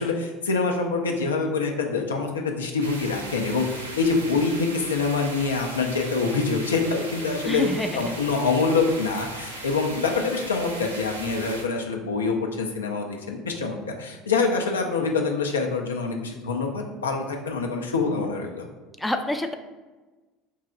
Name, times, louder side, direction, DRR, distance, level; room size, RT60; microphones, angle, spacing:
voice 1, 0.0-7.7 7.9-18.7, left 4 dB, 75° left, 2 dB, 0.4 m, -25 dB
sound 1, 2.8-11.6, right 2 dB, 85° right, 0.5 m, -38 dB
voice 2, 7.4-8.1 19.0-19.5, left 1 dB, 5° left, 5 dB, 0.3 m, -27 dB
4.7 x 2.8 x 2.4 m, 1.2 s
figure-of-eight pair, 70°, 0 cm